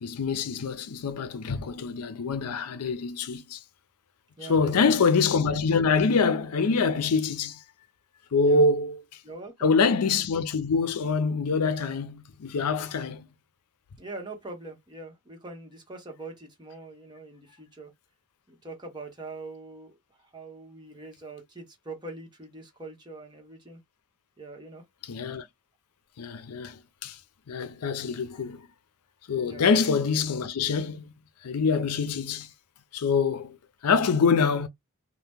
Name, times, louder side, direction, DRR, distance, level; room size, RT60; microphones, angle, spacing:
voice 1, 0.0-3.6 4.4-7.6 8.3-9.0 9.6-13.3 25.0-25.5 26.2-27.2 27.5-28.6 29.3-31.1 31.4-32.5 32.9-33.6 33.8-34.7, left 4 dB, 85° left, 0.5 m, -25 dB
voice 2, 4.4-4.9 8.4-8.6 9.2-9.7 14.0-17.9 18.5-23.8 24.4-24.8 29.4-29.7, right 2 dB, 20° right, 0.9 m, -43 dB
2.8 x 2.1 x 3.4 m
head